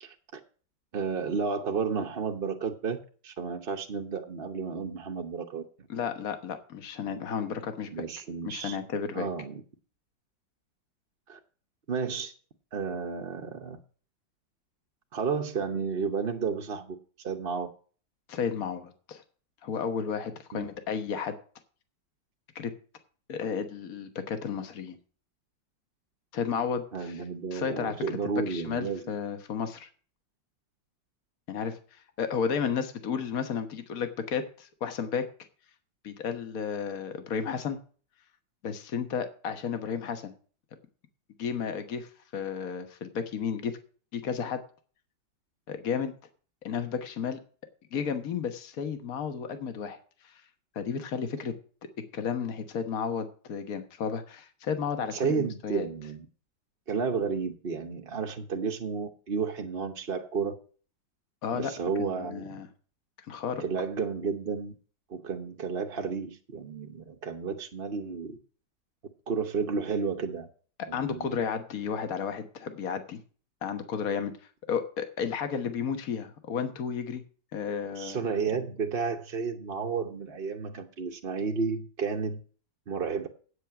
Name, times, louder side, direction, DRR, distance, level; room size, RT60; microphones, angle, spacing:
voice 1, 0.0-0.4 0.9-5.7 7.9-8.8 9.1-9.6 11.3-11.4 11.9-12.3 12.7-13.8 15.1-17.7 20.5-20.7 26.9-29.0 55.1-56.3 56.9-60.5 61.5-62.5 63.6-64.7 65.1-68.4 69.3-70.5 70.9-71.3 77.9-82.4 82.9-83.3, right 5 dB, 40° right, 0.9 m, -32 dB
voice 2, 5.9-8.0 8.4-9.3 18.3-19.2 19.6-21.4 22.5-22.7 23.3-25.0 26.3-27.2 27.5-28.2 28.5-29.9 31.5-35.3 36.0-37.8 38.6-40.3 41.4-43.8 44.1-44.6 45.7-46.1 46.6-47.4 47.9-50.0 50.2-50.3 50.7-51.6 52.1-55.9 61.4-61.7 62.0-62.7 63.3-63.6 70.8-73.2 73.6-74.3 74.7-77.2 77.5-78.2, left 6 dB, 55° left, 1.6 m, -33 dB
8.7 x 8.3 x 5.9 m
omnidirectional pair, 2.0 m